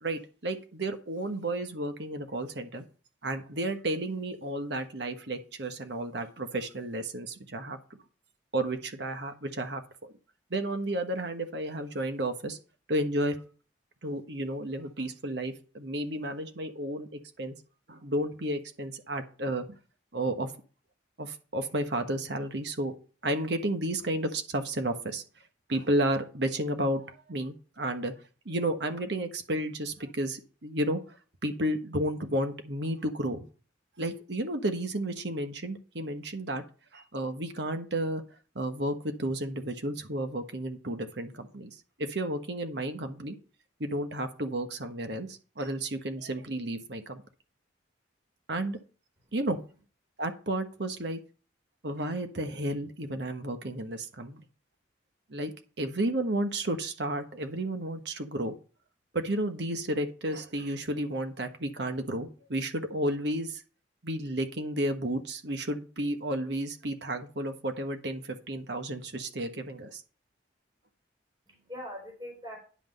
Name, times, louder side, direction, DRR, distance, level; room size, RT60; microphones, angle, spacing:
voice 1, 0.0-2.8 3.2-7.8 8.5-10.1 10.5-12.6 12.9-13.4 14.0-17.5 17.9-19.6 20.1-20.5 21.2-22.9 23.2-25.2 25.7-28.1 28.4-31.0 31.4-33.4 34.0-36.6 36.9-38.2 38.5-41.7 42.1-43.4 43.8-47.2 48.5-48.8 49.3-49.6 50.2-51.2 51.8-54.4 55.3-55.5 55.8-58.5 59.1-63.6 64.0-70.0, right 1 dB, 65° right, 7 dB, 1.3 m, -32 dB
voice 2, 49.2-49.8 71.5-72.6, equal, 25° right, -1 dB, 4.1 m, -43 dB
9.8 x 6.1 x 5.4 m, 0.37 s
head